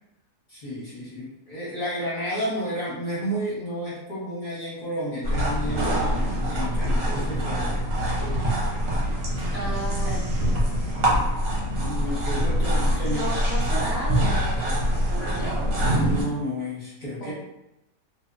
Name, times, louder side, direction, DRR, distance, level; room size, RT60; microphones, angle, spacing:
voice 1, 0.5-7.8 11.7-13.2 15.9-17.3, equal, 40° left, -8 dB, 0.7 m, -32 dB
sound 1, 5.2-16.2, equal, 60° right, 1.0 m, -24 dB
voice 2, 9.5-10.7 13.1-16.1 17.2-17.3, right 1 dB, 90° left, -9 dB, 0.3 m, -34 dB
2.7 x 2.0 x 2.5 m, 0.87 s
omnidirectional pair, 1.7 m